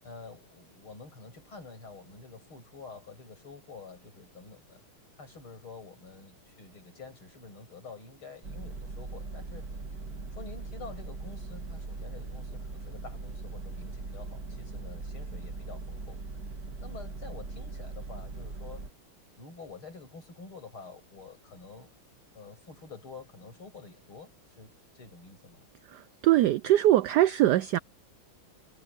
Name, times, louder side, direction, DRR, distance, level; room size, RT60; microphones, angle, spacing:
voice 1, 0.0-4.8 5.1-9.7 10.3-16.2 16.8-18.8 19.4-21.9 22.3-25.6, left 4 dB, 80° left, 8.3 m, -48 dB
sound 1, 8.4-18.9, right 3 dB, 45° right, 3.1 m, -40 dB
voice 2, 25.9-27.8, right 14 dB, 80° right, 0.9 m, -22 dB
omnidirectional pair, 2.3 m